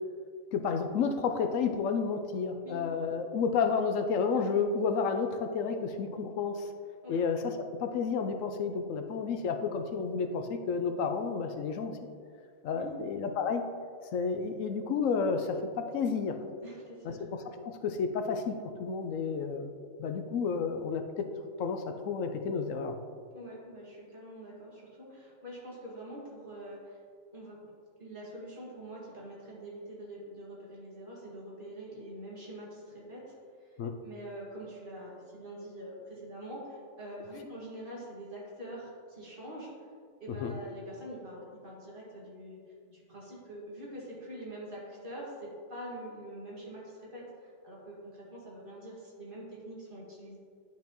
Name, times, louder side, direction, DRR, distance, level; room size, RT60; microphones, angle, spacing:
voice 1, 0.5-6.7 7.1-7.5 7.8-11.9 12.6-13.6 14.1-16.4 17.0-17.4 17.7-19.7 20.0-21.3 21.6-23.0 33.8-33.9 40.4-40.5, left 5 dB, 80° left, 7 dB, 1.0 m, -31 dB
voice 2, 16.6-17.2 23.3-27.0 27.3-33.7 34.0-39.9 40.2-42.6 42.9-50.4, right 1 dB, 40° right, -5 dB, 2.1 m, -45 dB
10.5 x 5.9 x 3.0 m, 2.2 s
omnidirectional pair, 1.3 m